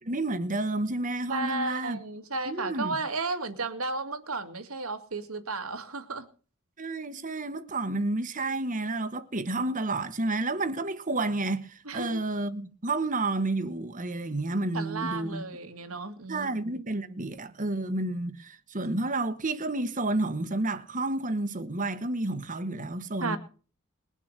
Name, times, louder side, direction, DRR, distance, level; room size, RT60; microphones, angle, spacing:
voice 1, 0.0-2.0 2.4-3.0 6.8-15.4 16.3-23.4, right 2 dB, 40° right, 1.3 m, -30 dB
voice 2, 1.3-6.3 11.8-12.2 14.7-16.5 23.2-23.4, right 3 dB, 80° right, 2.3 m, -33 dB
21.5 x 7.4 x 6.7 m
head